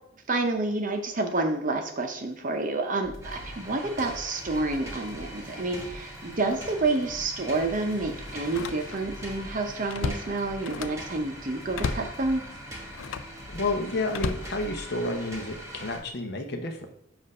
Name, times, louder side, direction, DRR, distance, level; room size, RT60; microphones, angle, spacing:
voice 1, 0.3-12.4, right 2 dB, 40° right, 5 dB, 0.6 m, -29 dB
sound 1, 3.0-15.5, equal, ahead, 1.6 m, -47 dB
sound 2, 3.2-16.0, equal, 15° right, 1.0 m, -42 dB
Slam, 6.2-6.5 7.0-7.1 8.4-9.2 9.5-11.1 11.7-12.2 12.9-13.4 14.1-15.2 15.8-16.1, left 5 dB, 85° left, 0.4 m, -34 dB
voice 2, 13.5-16.9, left 2 dB, 55° left, 5 dB, 0.7 m, -30 dB
7.6 x 2.5 x 5.3 m, 0.74 s
head